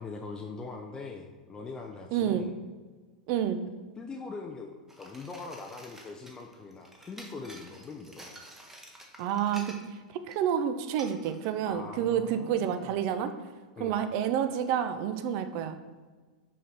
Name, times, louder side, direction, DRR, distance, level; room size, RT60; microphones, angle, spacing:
voice 1, 0.0-2.5 4.0-8.4 11.6-12.9 13.8-14.0, left 4 dB, 15° left, 2 dB, 0.5 m, -42 dB
voice 2, 2.1-2.5 3.3-3.6 9.2-9.7 10.1-13.3 13.8-15.7, right 9 dB, 45° right, 10 dB, 0.5 m, -29 dB
sound 1, 4.9-10.0 10.3-10.5 11.0-11.5, right 1 dB, 10° right, 0.9 m, -50 dB
6.1 x 3.9 x 4.3 m, 1.4 s
figure-of-eight pair, 95°, 4 cm